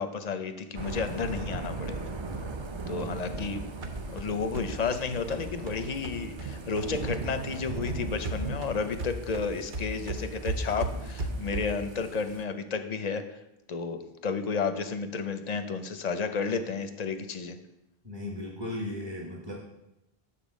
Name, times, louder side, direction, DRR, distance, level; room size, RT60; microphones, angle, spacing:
voice 1, 0.0-2.0 2.9-3.6 4.1-13.2 13.7-17.6, left 5 dB, 50° left, 9 dB, 0.6 m, -32 dB
Thunder / Rain, 0.7-12.4, right 3 dB, 40° right, 0.4 m, -38 dB
voice 2, 2.9-3.3 18.0-19.5, left 1 dB, 25° right, -2 dB, 1.1 m, -37 dB
sound 1, 3.0-7.3 7.5-11.9, right 2 dB, 55° right, 0.9 m, -37 dB
7.2 x 4.2 x 6.3 m, 0.89 s
omnidirectional pair, 1.0 m